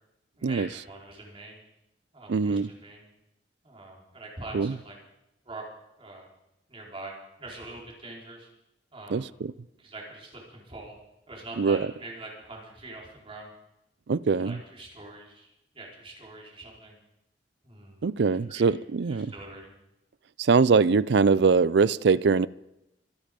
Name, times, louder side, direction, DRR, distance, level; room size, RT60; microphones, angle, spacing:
voice 1, 0.4-1.6 2.1-3.1 3.6-5.0 5.4-5.6 6.0-6.3 6.7-7.1 7.4-8.5 8.9-9.3 9.8-11.0 11.3-13.5 14.4-15.5 15.7-17.0 17.6-18.7 19.1-19.7, right 2 dB, 30° right, 4.5 m, -44 dB
voice 2, 2.3-2.7 4.5-4.8 9.1-9.5 11.6-11.9 14.1-14.6 18.0-19.3 20.4-22.5, right 5 dB, 65° right, 0.5 m, -22 dB
25.5 x 10.0 x 5.3 m
head